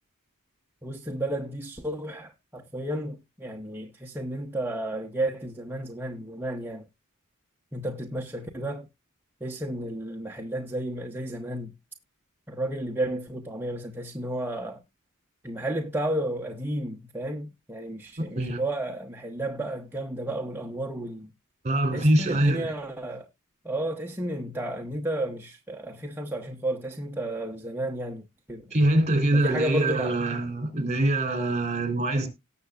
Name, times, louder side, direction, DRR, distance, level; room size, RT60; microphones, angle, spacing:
voice 1, 0.8-6.9 7.7-8.9 9.4-11.7 12.5-14.8 15.4-21.3 21.9-23.3 23.6-28.7 29.3-30.2, right 1 dB, 10° right, 0.9 m, -32 dB
voice 2, 21.6-22.7 28.7-32.3, right 1 dB, 30° right, 3.5 m, -24 dB
18.5 x 6.9 x 2.4 m
head